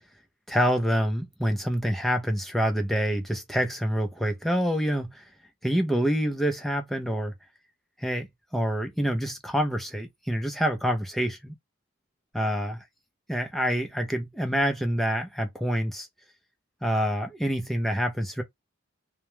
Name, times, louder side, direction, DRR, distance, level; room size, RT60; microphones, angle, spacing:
voice 1, 0.5-5.2 5.6-7.3 8.0-11.5 12.3-12.8 13.3-16.1 16.8-18.4, equal, ahead, 0.4 m, -27 dB
2.3 x 2.1 x 3.0 m
head